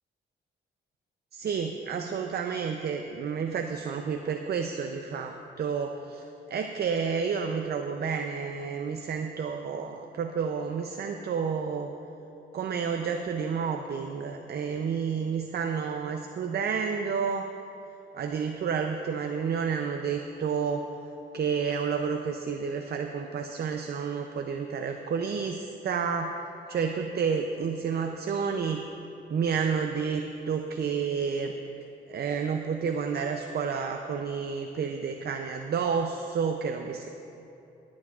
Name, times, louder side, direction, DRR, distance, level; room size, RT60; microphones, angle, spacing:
voice 1, 1.3-11.9 12.5-17.5 18.1-20.8 21.3-26.4 26.7-28.8 29.3-31.5 32.1-37.1, right 6 dB, 50° right, 5 dB, 0.5 m, -30 dB
24.0 x 8.4 x 2.4 m, 2.9 s
cardioid pair, 80°, 21 cm